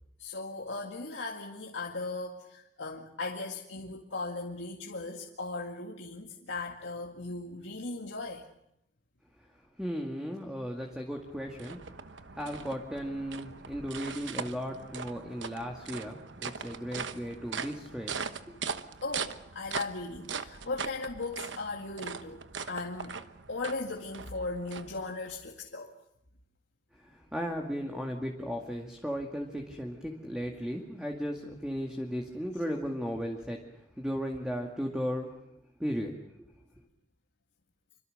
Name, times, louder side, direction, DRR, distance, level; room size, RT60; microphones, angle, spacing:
voice 1, 0.2-8.5 19.0-23.2 23.5-25.9, left 3 dB, 90° left, 0 dB, 2.1 m, -38 dB
voice 2, 9.8-11.8 12.4-18.6 27.0-33.6 34.0-35.3 35.8-36.2, equal, 5° right, 1 dB, 2.1 m, -36 dB
sound 1, 10.9-25.4, right 6 dB, 85° right, 1.1 m, -41 dB
27.0 x 24.5 x 6.6 m, 0.79 s
head